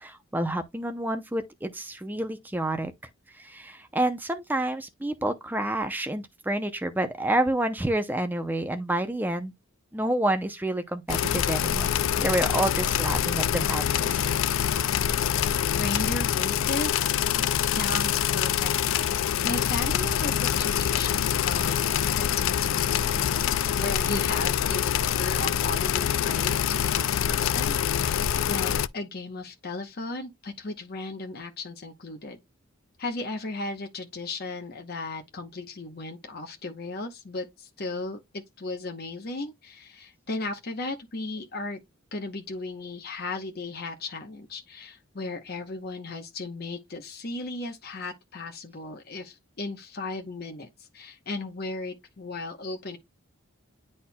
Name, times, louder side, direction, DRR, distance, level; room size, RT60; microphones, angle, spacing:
voice 1, 0.0-2.9 3.4-9.5 9.9-11.9 12.2-14.2, right 1 dB, 10° right, 0.5 m, -28 dB
sound 1, 11.1-28.9, left 9 dB, 70° left, 0.3 m, -25 dB
voice 2, 15.7-18.7 19.4-21.8 22.0-23.4 23.7-28.2 28.5-32.4 33.0-41.8 42.1-53.0, left 2 dB, 50° left, 0.9 m, -36 dB
10.0 x 4.3 x 2.2 m
head